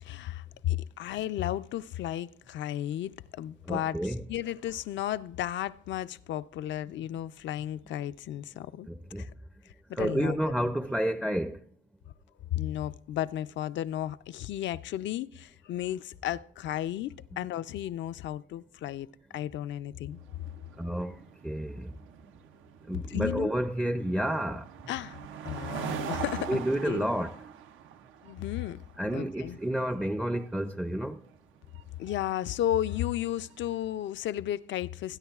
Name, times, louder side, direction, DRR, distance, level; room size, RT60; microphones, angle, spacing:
voice 1, 0.0-8.9 9.2-9.3 9.9-10.4 12.5-19.1 19.3-20.2 22.9-23.5 24.9-25.2 25.4-27.1 28.2-28.8 29.1-29.6 32.0-35.2, left 12 dB, 70° left, 0.4 m, -33 dB
voice 2, 3.7-4.2 9.1-9.2 10.0-11.6 20.8-21.2 21.4-21.9 22.9-24.6 26.5-27.3 29.0-31.2, right 1 dB, 5° right, 0.4 m, -30 dB
sound 1, 20.2-33.7, right 9 dB, 85° right, 0.5 m, -43 dB
21.5 x 9.6 x 2.3 m
cardioid pair, 90°, 20 cm